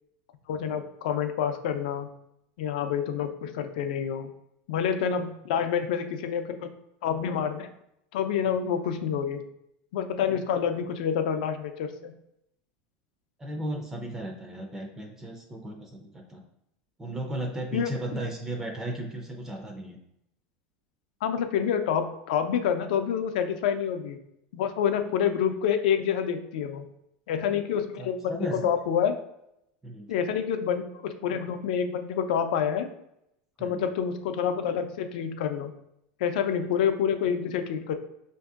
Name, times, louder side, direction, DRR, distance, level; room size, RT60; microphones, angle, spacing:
voice 1, 0.5-2.1 2.6-4.3 4.7-6.7 7.0-7.7 8.1-9.4 9.9-12.1 17.7-17.9 21.2-24.2 24.5-26.9 27.3-29.1 30.1-32.9 33.6-35.7 36.2-37.9, left 8 dB, 75° left, 7 dB, 0.4 m, -27 dB
voice 2, 13.4-16.4 17.0-20.0 28.0-28.6 29.8-30.1 33.6-33.8, right 1 dB, 10° right, 2 dB, 0.4 m, -35 dB
5.1 x 2.6 x 2.4 m, 0.79 s
supercardioid pair, 160°, 4 cm